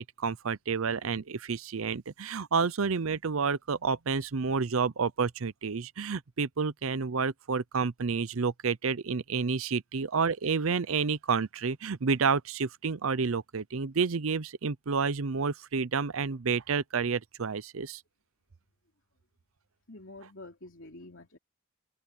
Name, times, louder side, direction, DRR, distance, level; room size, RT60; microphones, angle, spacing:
voice 1, 0.0-18.0, right 5 dB, 75° right, 0.7 m, -30 dB
voice 2, 19.9-21.4, left 2 dB, 60° left, 3.1 m, -47 dB
head